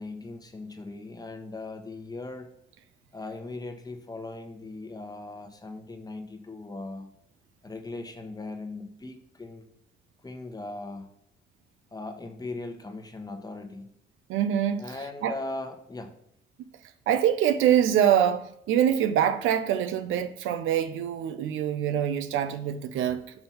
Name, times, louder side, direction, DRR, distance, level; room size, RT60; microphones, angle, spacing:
voice 1, 0.0-2.5 3.1-7.1 7.6-9.6 10.2-11.1 11.9-13.9 14.8-16.1, left 2 dB, 20° left, 1.0 m, -39 dB
voice 2, 14.3-14.8 15.2-15.3 16.6-16.7 17.1-23.3, right 9 dB, 85° right, 0.6 m, -24 dB
5.8 x 3.4 x 5.7 m
cardioid pair, 90°, 20 cm